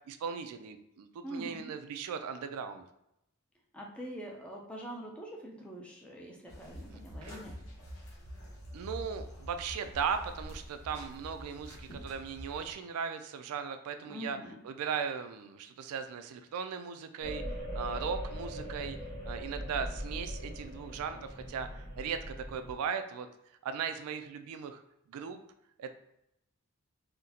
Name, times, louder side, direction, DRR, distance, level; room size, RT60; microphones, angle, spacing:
voice 1, 0.1-2.8 6.9-7.4 8.7-14.4 14.6-19.0 19.3-23.3 23.6-24.8 25.1-25.4 25.8-25.9, right 6 dB, 90° right, 9 dB, 0.3 m, -38 dB
voice 2, 1.2-1.7 3.7-7.5 14.0-14.6, right 1 dB, 5° left, -2 dB, 0.4 m, -44 dB
sound 1, 6.5-12.7, equal, 85° left, 0.9 m, -46 dB
sound 2, 17.2-22.7, equal, 60° left, 1.0 m, -40 dB
3.8 x 2.1 x 2.7 m, 0.81 s
head